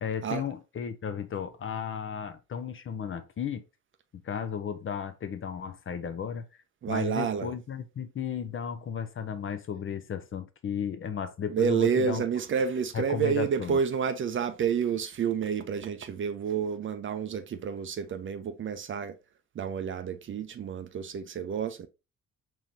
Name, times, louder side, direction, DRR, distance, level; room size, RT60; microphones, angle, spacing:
voice 1, 0.0-3.6 4.2-6.5 6.9-12.2 12.9-13.8, left 7 dB, 35° left, 0.6 m, -34 dB
voice 2, 6.8-7.5 11.5-19.1 19.6-21.9, right 7 dB, 35° right, 0.5 m, -29 dB
4.8 x 3.1 x 2.7 m
hypercardioid pair, 45°, 34 cm